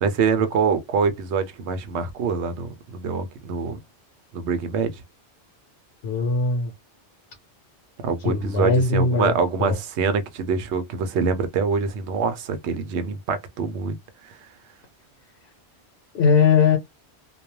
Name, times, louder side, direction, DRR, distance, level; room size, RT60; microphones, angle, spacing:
voice 1, 0.0-3.8 4.3-4.9 8.0-14.0 14.2-14.4, right 5 dB, 80° right, 0.9 m, -25 dB
voice 2, 6.0-6.7 8.2-9.3 9.6-9.8 16.1-16.8, left 5 dB, 70° left, 0.9 m, -20 dB
2.3 x 2.2 x 2.9 m
omnidirectional pair, 1.1 m